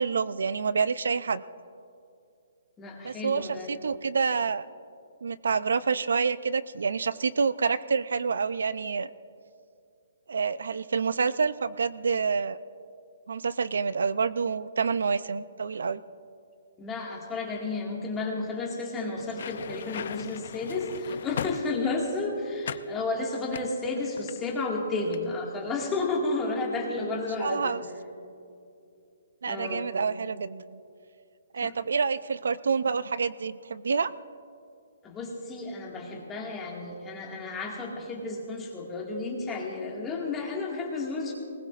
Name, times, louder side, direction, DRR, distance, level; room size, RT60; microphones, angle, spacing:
voice 1, 0.0-1.4 3.0-4.7 5.2-9.1 10.3-12.6 13.3-16.0 27.4-27.8 29.4-30.8 31.5-34.1, right 5 dB, 75° right, 16 dB, 0.4 m, -27 dB
voice 2, 2.8-3.7 16.8-27.8 29.4-29.9 31.6-31.7 35.0-41.3, left 3 dB, 10° left, -2 dB, 1.9 m, -32 dB
sound 1, 19.2-22.1 22.6-22.9 23.5-24.7 25.0-25.3, left 8 dB, 50° left, 0.4 m, -38 dB
21.5 x 19.5 x 2.5 m, 2.5 s
hypercardioid pair, 170°, 0 cm